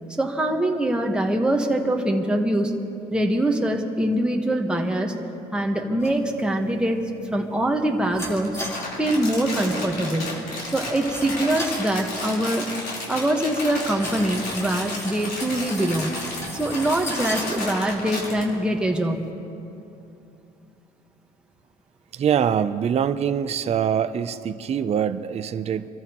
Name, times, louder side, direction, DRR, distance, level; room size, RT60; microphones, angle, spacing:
voice 1, 0.2-2.7 3.1-5.1 5.5-7.0 7.3-8.5 9.0-10.4 10.7-12.7 13.1-16.1 16.5-19.3, right 1 dB, 5° right, 1 dB, 1.3 m, -23 dB
sound 1, 6.0-19.3, equal, 15° left, 3.5 m, -39 dB
Crumpling crinkling, 8.3-18.4, left 2 dB, 65° left, 3.8 m, -32 dB
voice 2, 22.1-25.9, right 8 dB, 40° right, 11 dB, 0.5 m, -24 dB
24.5 x 14.0 x 3.0 m, 2.8 s
cardioid pair, 110°, 17 cm